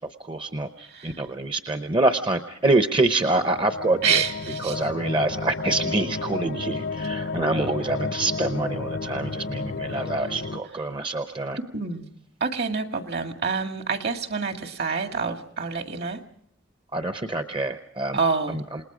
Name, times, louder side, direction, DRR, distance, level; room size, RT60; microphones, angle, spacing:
voice 1, 0.2-4.2 4.6-11.6 16.9-18.2 18.5-18.8, right 2 dB, 25° right, 8 dB, 0.8 m, -26 dB
voice 2, 0.8-1.2 4.0-4.9 11.6-12.1 12.4-16.2 18.1-18.6, right 5 dB, 60° right, 6 dB, 2.0 m, -27 dB
sound 1, 3.2-10.6, left 4 dB, 60° left, 0.8 m, -32 dB
28.5 x 20.0 x 5.0 m, 0.67 s
head